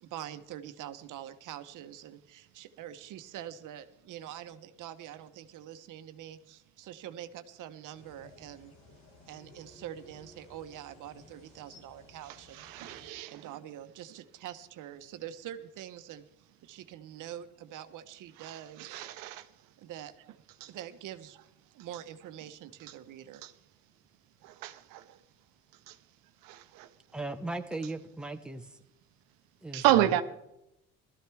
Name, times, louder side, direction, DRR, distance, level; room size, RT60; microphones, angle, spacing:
voice 1, 0.0-8.7 9.3-12.9 13.3-16.2 16.6-19.1 19.8-21.4 21.7-23.5, right 11 dB, 65° right, 1.1 m, -45 dB
sound 1, 7.9-13.1, left 3 dB, 80° left, 3.0 m, -57 dB
voice 2, 12.6-13.4 18.4-19.4 23.4-23.5 24.4-25.0 25.9-26.0 26.4-26.9 29.7-30.2, right 13 dB, 85° right, 0.9 m, -30 dB
voice 3, 27.1-28.8 29.6-30.1, right 2 dB, 5° right, 1.1 m, -38 dB
17.5 x 13.5 x 3.5 m
supercardioid pair, 95°, 33 cm